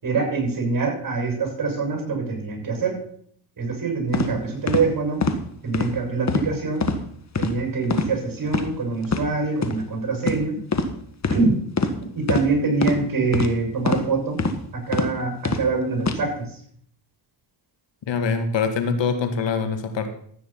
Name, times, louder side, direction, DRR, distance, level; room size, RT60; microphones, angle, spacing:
voice 1, 0.0-3.0 3.6-5.2 5.6-6.9 7.4-10.6 11.3-11.6 12.1-14.4 14.7-16.6, right 4 dB, 45° right, 3 dB, 6.5 m, -24 dB
sound 1, 4.1-4.3 4.7-4.8 5.2-5.4 5.7-5.9 6.3-6.5 6.8-7.0 7.3-7.5 7.9-8.1 8.5-8.6 9.0-9.2 9.6-9.7 10.2-10.4 10.7-10.9 11.2-11.4 11.8-11.9 12.3-12.4 12.8-13.0 13.3-13.5 13.8-14.0 14.4-14.6 14.9-15.1 15.4-15.6 16.0-16.2, left 4 dB, 35° left, 1.9 m, -23 dB
voice 2, 18.1-20.1, left 5 dB, 60° left, 7 dB, 2.0 m, -24 dB
13.5 x 9.1 x 5.7 m, 0.64 s
supercardioid pair, 65°, 48 cm